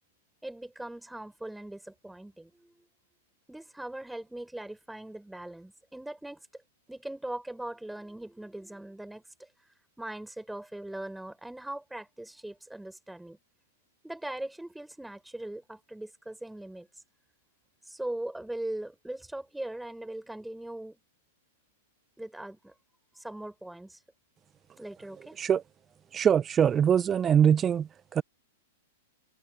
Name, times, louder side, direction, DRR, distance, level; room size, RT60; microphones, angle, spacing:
voice 1, 0.4-2.9 3.5-6.5 6.9-9.5 10.0-13.4 14.0-16.9 17.8-21.0 22.2-22.7 23.2-24.0 24.8-25.4, right 1 dB, 5° right, 7.5 m, -40 dB
voice 2, 26.1-28.2, right 8 dB, 20° right, 1.3 m, -23 dB
figure-of-eight pair, 100°, 0 cm